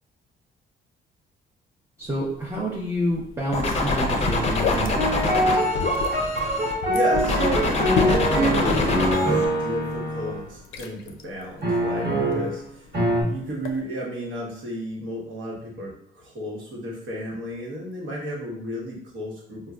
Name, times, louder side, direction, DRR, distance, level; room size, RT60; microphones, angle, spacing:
sound 1, 2.0-13.8, left 6 dB, 80° left, 0.4 m, -35 dB
voice 1, 2.0-5.6, equal, 15° right, -4 dB, 0.6 m, -29 dB
sound 2, 3.5-6.7 7.1-9.5, left 2 dB, 35° left, 0.5 m, -25 dB
sound 3, 5.0-10.5 11.6-12.6 12.9-13.2, right 1 dB, 55° right, 1.2 m, -24 dB
voice 2, 6.8-12.8 13.3-19.6, equal, 70° right, -3 dB, 1.1 m, -32 dB
3.9 x 2.2 x 2.3 m, 0.70 s
cardioid pair, 90°, 20 cm